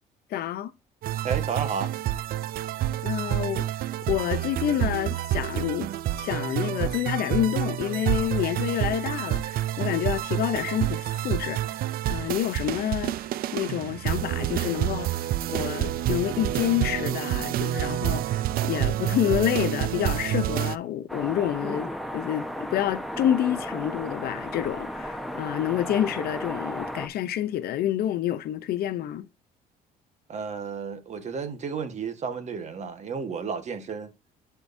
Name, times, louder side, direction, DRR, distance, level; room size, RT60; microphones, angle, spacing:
voice 1, 0.3-0.7 3.0-3.7 4.1-5.9 6.2-11.8 12.1-29.3, left 11 dB, 65° left, 0.6 m, -28 dB
sound 1, 1.0-20.8, right 13 dB, 60° right, 0.4 m, -28 dB
voice 2, 1.2-1.9 30.3-34.1, right 5 dB, 45° right, 1.3 m, -32 dB
sound 2, 21.1-27.1, equal, ahead, 1.0 m, -34 dB
10.5 x 4.7 x 2.6 m
cardioid pair, 110°, 17 cm